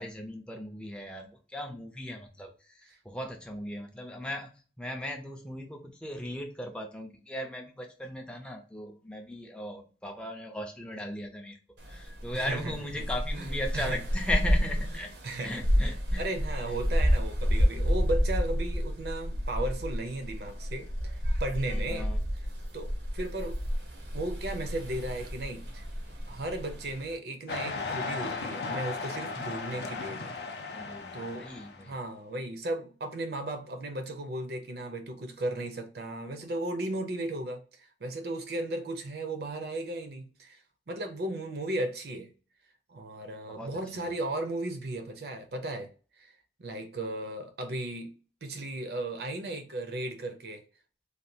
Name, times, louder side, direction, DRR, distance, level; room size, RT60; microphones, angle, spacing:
voice 1, 0.0-4.5 4.8-11.6 11.9-15.1 15.4-16.2 16.7-16.8 21.9-22.2 30.7-32.0 43.5-43.8, left 1 dB, 5° left, 0.4 m, -37 dB
sound 1, 11.8-27.2, equal, 90° right, 0.9 m, -30 dB
voice 2, 12.3-12.8 13.3-14.0 15.2-22.1 22.7-23.6 24.1-25.8 26.3-30.3 31.1-31.5 31.8-40.6 40.9-42.3 42.9-45.9 46.2-46.3 46.6-48.1 48.4-50.6, right 1 dB, 60° right, 0.6 m, -35 dB
sound 2, 27.5-31.8, left 4 dB, 65° left, 0.5 m, -36 dB
3.3 x 2.2 x 2.7 m
head